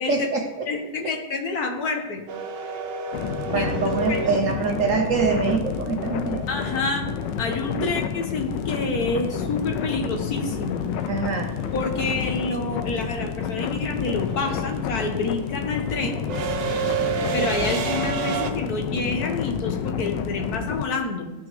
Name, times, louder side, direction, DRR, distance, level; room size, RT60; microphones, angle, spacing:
voice 1, 0.1-0.7 3.5-6.5 7.8-7.9 11.1-11.5, right 4 dB, 60° right, 4 dB, 1.0 m, -24 dB
voice 2, 0.7-2.2 3.6-3.7 4.1-4.4 6.5-7.1 7.4-10.8 11.7-16.2 17.3-21.3, left 3 dB, 60° left, 3 dB, 1.7 m, -28 dB
sound 1, 2.3-6.3 8.8-8.9 10.1-10.5 10.7-18.5, right 6 dB, 85° right, 1.5 m, -30 dB
sound 2, 3.1-20.9, left 7 dB, 90° left, 1.3 m, -29 dB
14.5 x 5.9 x 3.2 m, 1.0 s
omnidirectional pair, 1.9 m